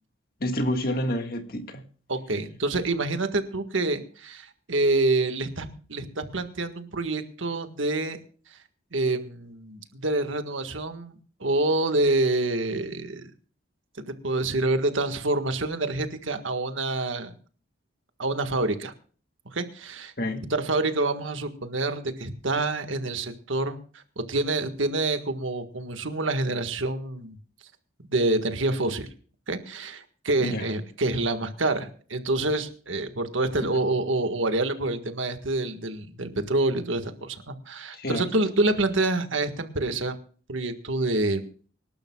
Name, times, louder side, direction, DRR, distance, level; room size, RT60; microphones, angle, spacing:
voice 1, 0.4-1.8 20.2-20.5 30.4-30.7 37.9-38.3, left 1 dB, 50° left, 1.7 m, -28 dB
voice 2, 2.1-8.2 8.9-13.3 14.1-17.3 18.2-18.9 19.5-20.1 20.5-27.4 28.1-29.1 29.5-40.2 40.5-41.4, right 2 dB, 80° right, 1.7 m, -27 dB
25.5 x 12.0 x 2.4 m
head